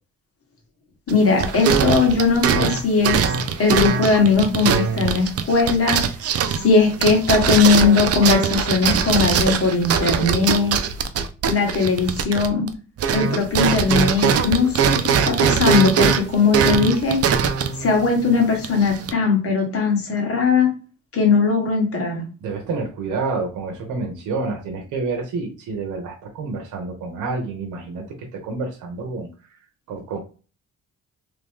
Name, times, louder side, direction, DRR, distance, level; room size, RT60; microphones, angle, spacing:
voice 1, 1.1-3.3 3.6-6.0 6.6-10.8 11.5-12.7 13.1-17.2 17.8-20.7 21.1-22.2, left 4 dB, 50° left, 0 dB, 1.8 m, -19 dB
sound 1, 1.1-12.7 13.0-19.1, right 7 dB, 55° right, 0.6 m, -22 dB
voice 2, 22.4-29.6 29.9-30.2, right 3 dB, 80° right, 2 dB, 0.9 m, -29 dB
3.3 x 3.0 x 3.6 m, 0.35 s
cardioid pair, 90°, 30 cm